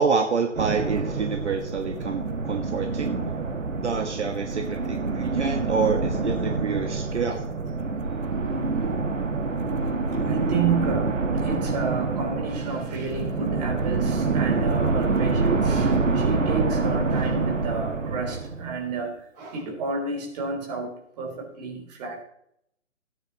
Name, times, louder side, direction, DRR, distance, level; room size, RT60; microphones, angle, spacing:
voice 1, 0.0-3.2 3.8-7.4, right 5 dB, 65° right, 4 dB, 1.6 m, -27 dB
sound 1, 0.5-19.0, right 4 dB, 80° right, 1.6 m, -26 dB
voice 2, 10.1-22.2, right 4 dB, 35° right, 1 dB, 3.4 m, -31 dB
16.5 x 9.6 x 3.0 m, 0.73 s
figure-of-eight pair, 140°, 37 cm